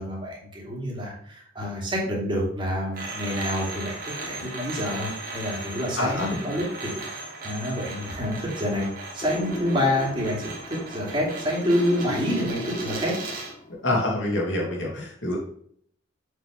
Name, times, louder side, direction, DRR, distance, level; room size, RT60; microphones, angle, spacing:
voice 1, 0.0-13.1, equal, 25° right, -3 dB, 2.8 m, -28 dB
sound 1, 2.9-13.6, right 3 dB, 45° right, 2.0 m, -37 dB
voice 2, 6.0-6.3 13.8-15.4, left 1 dB, 70° left, -3 dB, 3.0 m, -26 dB
sound 2, 9.2-13.8, left 2 dB, 30° left, 0.4 m, -35 dB
7.2 x 6.5 x 3.4 m, 0.64 s
head